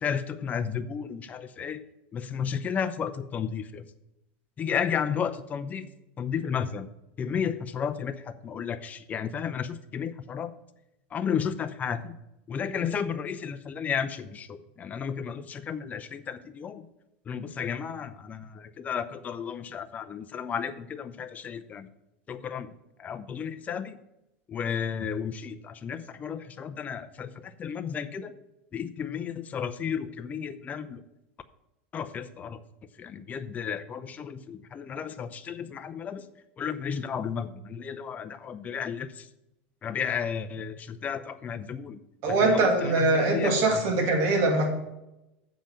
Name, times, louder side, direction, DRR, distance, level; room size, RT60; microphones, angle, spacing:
voice 1, 0.0-1.8 2.1-3.8 4.6-5.9 6.2-6.9 7.2-10.5 11.1-12.2 12.5-16.8 17.3-21.9 22.3-22.7 23.0-24.0 24.5-28.3 28.7-31.0 31.9-32.6 33.0-36.3 36.6-39.2 39.8-42.0 42.3-43.8, left 7 dB, 25° left, 10 dB, 0.7 m, -33 dB
voice 2, 42.2-44.7, right 2 dB, 55° right, 3 dB, 2.3 m, -23 dB
7.5 x 5.1 x 7.3 m, 0.90 s
supercardioid pair, 115°, 6 cm